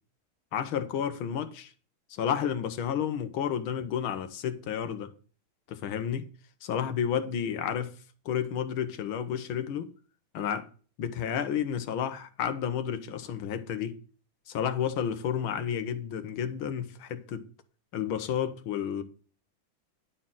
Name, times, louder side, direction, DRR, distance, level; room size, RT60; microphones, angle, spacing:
voice 1, 0.5-1.7 2.1-5.1 5.7-6.3 6.6-7.9 8.3-9.9 10.3-10.7 11.0-14.0 14.5-17.4 17.9-19.0, left 8 dB, 85° left, 1.9 m, -31 dB
11.0 x 4.4 x 7.3 m
omnidirectional pair, 2.2 m